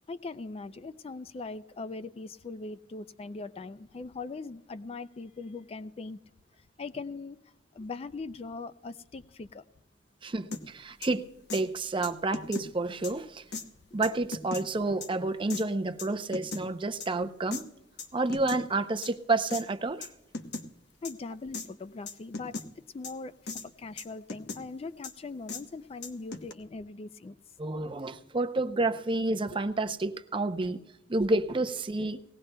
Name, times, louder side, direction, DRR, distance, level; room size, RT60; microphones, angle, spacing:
voice 1, 0.1-6.2 6.6-7.4 7.7-9.7 13.9-14.0 21.0-27.4, left 3 dB, 35° left, 14 dB, 0.4 m, -41 dB
voice 2, 10.2-11.2 11.5-13.4 13.9-17.6 18.1-20.1 27.6-30.8 31.1-32.2, right 2 dB, 25° right, 8 dB, 0.6 m, -29 dB
sound 1, 10.5-10.6 11.0-11.1 11.5-11.6 12.0-12.7 13.0-13.1 13.5-13.7 14.0-14.6 15.0-15.1 15.5-15.6 16.0-16.6 17.0-17.1 17.5-17.6 18.0-18.6 19.0-19.1 19.5-19.6 20.0-20.1 20.3-20.7 21.0-21.1 21.5-21.7 22.1-22.7 23.0-23.1 23.5-23.7 24.0-24.6 25.0-25.1 25.5-25.6 26.0-26.5, left 3 dB, 65° left, 0.9 m, -37 dB
19.5 x 17.0 x 2.2 m, 0.95 s
head